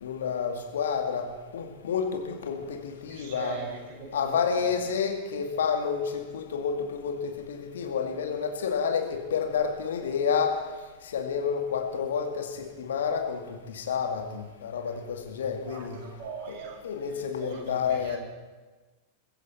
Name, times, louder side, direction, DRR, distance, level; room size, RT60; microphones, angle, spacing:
voice 1, 0.0-1.3 1.5-3.6 4.1-10.6 11.0-16.0 16.5-16.6 16.8-18.2, left 6 dB, 65° left, 4 dB, 2.3 m, -29 dB
voice 2, 3.1-4.1 15.7-15.8 16.2-16.8 17.4-18.2, right 5 dB, 45° right, -3 dB, 6.9 m, -39 dB
22.5 x 14.5 x 4.4 m, 1.2 s
figure-of-eight pair, 90°, 0 cm